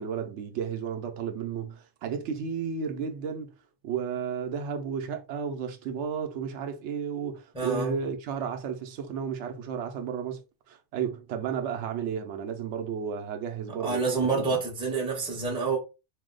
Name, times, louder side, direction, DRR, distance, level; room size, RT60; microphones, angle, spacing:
voice 1, 0.0-3.5 3.8-10.4 10.7-14.5, right 7 dB, 70° right, 0.9 m, -33 dB
voice 2, 7.5-7.9 13.8-15.8, right 4 dB, 5° right, 0.7 m, -28 dB
2.7 x 2.1 x 3.7 m
omnidirectional pair, 1.3 m